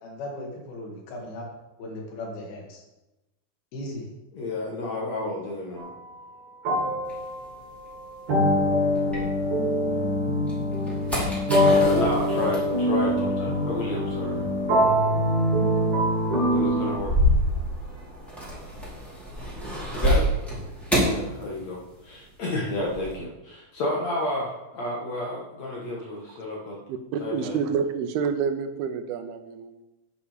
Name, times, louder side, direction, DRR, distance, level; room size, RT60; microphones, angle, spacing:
voice 1, 0.0-1.5 1.8-2.8 3.7-4.1, left 1 dB, 75° left, 4.0 m, -37 dB
voice 2, 4.3-5.9 11.6-14.4 16.5-17.1 19.9-20.3 21.0-26.8 27.2-27.6, left 2 dB, 55° left, 2.4 m, -31 dB
sound 1, 5.8-6.0 6.6-16.9, equal, 50° right, 3.5 m, -24 dB
sound 2, 7.1-9.9 10.3-22.1 22.3-23.1, equal, ahead, 3.5 m, -29 dB
voice 3, 26.9-29.8, right 6 dB, 80° right, 2.8 m, -28 dB
10.0 x 8.5 x 5.1 m
omnidirectional pair, 4.4 m